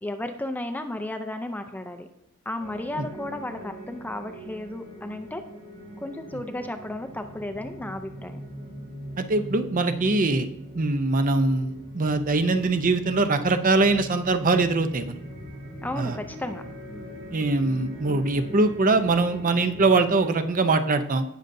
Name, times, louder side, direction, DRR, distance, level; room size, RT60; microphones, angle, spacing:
voice 1, 0.0-2.1 2.5-5.4 6.0-8.4 15.8-16.6, left 1 dB, 10° left, 7 dB, 0.4 m, -33 dB
sound 1, 2.6-20.3, equal, 60° right, 3.6 m, -41 dB
voice 2, 9.2-10.5 10.8-15.2 16.0-16.2 17.3-21.2, right 3 dB, 40° right, 9 dB, 0.6 m, -22 dB
17.5 x 6.6 x 2.6 m, 0.82 s
head